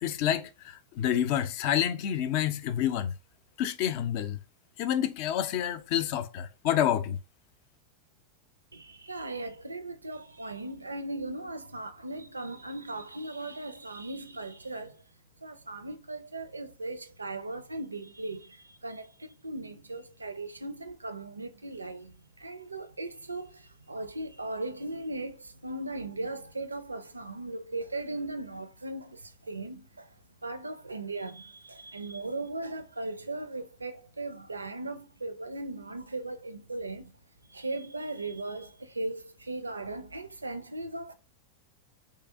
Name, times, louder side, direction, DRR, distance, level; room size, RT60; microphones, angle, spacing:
voice 1, 0.0-3.1 3.6-4.4 4.8-7.2, left 10 dB, 45° left, 0.4 m, -28 dB
voice 2, 8.7-15.0 15.4-37.2 37.5-41.1, right 2 dB, 80° right, 0.4 m, -38 dB
3.2 x 2.7 x 3.4 m
figure-of-eight pair, 90°, 0 cm